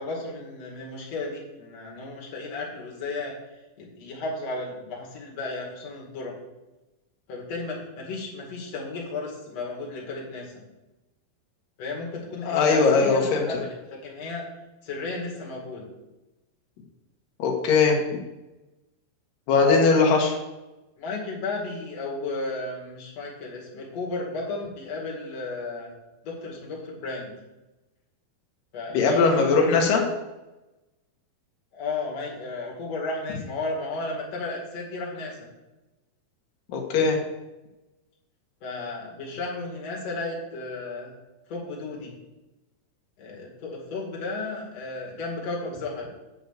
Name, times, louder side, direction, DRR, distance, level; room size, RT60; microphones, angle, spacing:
voice 1, 0.0-3.3 3.8-6.3 7.3-10.5 11.8-14.4 14.8-15.9 21.0-25.9 26.2-27.3 28.7-30.0 31.7-35.5 38.6-41.1 41.5-42.2 43.2-46.1, left 3 dB, 50° left, -2 dB, 3.0 m, -34 dB
voice 2, 12.5-13.5 17.4-18.0 19.5-20.4 28.9-30.0 36.7-37.2, left 4 dB, 65° left, 1 dB, 3.0 m, -20 dB
8.5 x 5.2 x 7.4 m, 1.0 s
omnidirectional pair, 4.4 m